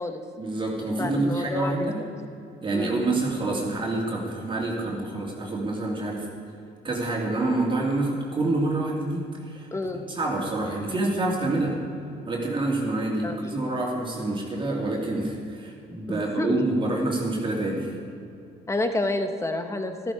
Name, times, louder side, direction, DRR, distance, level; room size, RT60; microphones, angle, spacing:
voice 1, 0.4-2.0 2.6-6.3 6.8-9.7 10.1-11.8 12.3-17.9, right 2 dB, 30° right, -2 dB, 2.7 m, -27 dB
voice 2, 1.0-1.9 2.7-3.0 9.7-10.0 13.2-13.4 16.1-16.5 18.7-20.1, left 2 dB, 15° left, 6 dB, 1.3 m, -29 dB
13.5 x 13.5 x 5.0 m, 2.5 s
cardioid pair, 110°, 17 cm